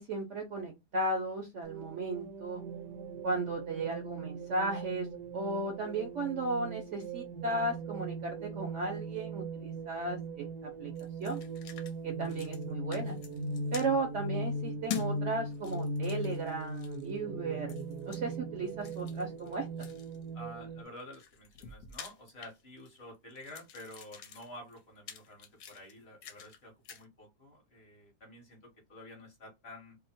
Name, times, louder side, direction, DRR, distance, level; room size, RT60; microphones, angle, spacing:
voice 1, 0.0-2.6 3.2-5.1 5.3-10.9 11.2-11.4 12.0-13.2 13.7-17.8 18.1-19.9, right 2 dB, 60° right, 3 dB, 0.8 m, -35 dB
sound 1, 1.6-20.8, right 2 dB, 80° right, 1.2 m, -39 dB
sound 2, 11.0-11.9 12.2-12.6 12.9-13.9 14.9-15.1 15.5-17.1 17.7-18.2 18.8-20.2 20.9-23.0 23.3-26.6 26.8-27.0, left 9 dB, 70° left, 1.0 m, -46 dB
voice 2, 20.3-30.0, left 1 dB, 45° left, 0 dB, 1.0 m, -50 dB
2.8 x 2.0 x 4.1 m, 0.22 s
omnidirectional pair, 1.8 m